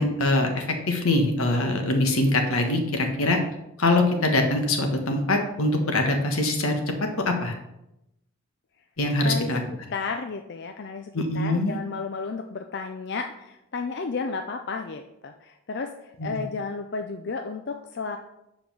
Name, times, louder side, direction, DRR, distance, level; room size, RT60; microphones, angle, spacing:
voice 1, 0.0-3.4 3.8-6.7 7.2-7.5 9.0-9.6 11.1-11.8 16.2-16.4, left 2 dB, 80° left, 4 dB, 1.4 m, -23 dB
voice 2, 9.2-9.5 9.9-18.2, left 4 dB, 50° left, 5 dB, 0.4 m, -33 dB
7.2 x 4.9 x 6.0 m, 0.87 s
head